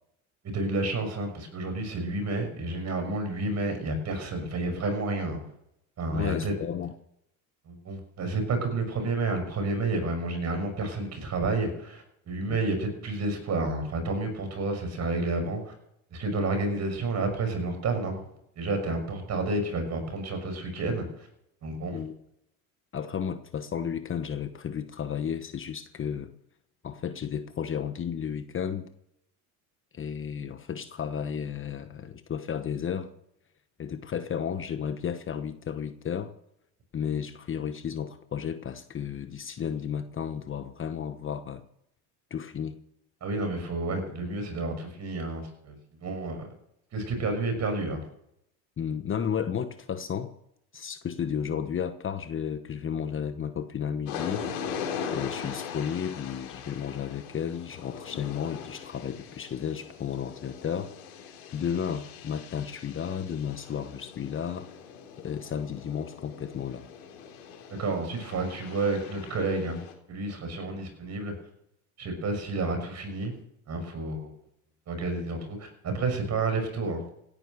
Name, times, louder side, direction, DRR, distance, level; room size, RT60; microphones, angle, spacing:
voice 1, 0.4-5.4 6.0-6.6 7.7-15.7 16.1-18.2 18.6-21.3 21.6-22.0 43.2-45.8 46.0-46.5 46.9-48.0 67.7-71.3 72.0-73.3 73.7-74.3 74.9-77.0, right 2 dB, 35° right, 6 dB, 6.1 m, -30 dB
voice 2, 6.1-6.9 12.5-12.6 21.9-22.2 22.9-26.3 26.8-28.9 29.9-33.1 33.8-36.3 36.9-41.6 42.3-42.8 48.8-50.3 50.7-54.8 55.1-64.7 65.2-66.8, left 8 dB, 30° left, 9 dB, 1.1 m, -33 dB
sound 1, 54.1-69.9, left 7 dB, 70° left, 4.1 m, -41 dB
17.0 x 10.5 x 6.6 m, 0.76 s
supercardioid pair, 105°, 43 cm